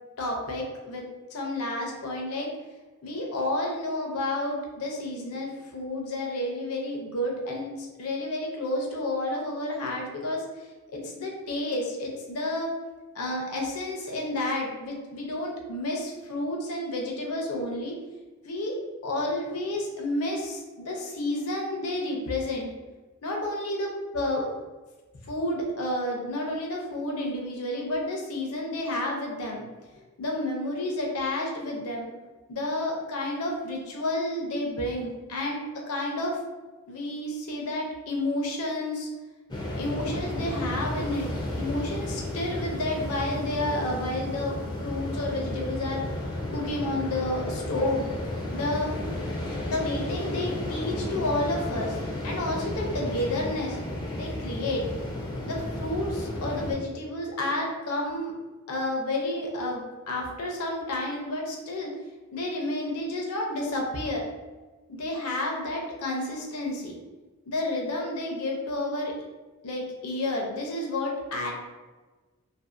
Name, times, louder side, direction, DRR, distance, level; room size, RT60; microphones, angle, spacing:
voice 1, 0.2-1.1 1.3-2.5 3.0-12.7 13.1-17.9 18.4-18.7 19.0-22.7 23.2-24.5 25.2-29.6 30.0-32.1 32.5-35.6 35.9-36.4 36.9-39.1 39.8-41.3 41.6-44.5 44.8-46.1 46.5-48.1 48.5-48.9 49.7-52.0 52.2-53.8 54.1-54.8 55.5-58.3 58.7-61.9 62.3-64.2 64.9-67.0 67.5-69.1 69.6-71.5, left 1 dB, 80° left, 0 dB, 0.6 m, -30 dB
sound 1, 39.5-56.7, left 1 dB, 20° left, 0.4 m, -33 dB
2.6 x 2.4 x 2.5 m, 1.2 s
head